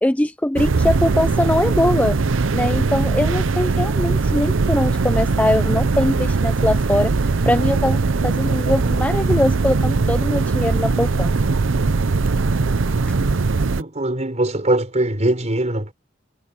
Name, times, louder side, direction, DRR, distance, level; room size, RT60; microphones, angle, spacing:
voice 1, 0.0-2.2 2.5-7.1 7.5-11.3, left 1 dB, 5° left, 0.5 m, -21 dB
sound 1, 0.6-13.8, right 4 dB, 75° right, 0.7 m, -20 dB
voice 2, 13.8-15.9, right 1 dB, 35° right, 4.7 m, -21 dB
head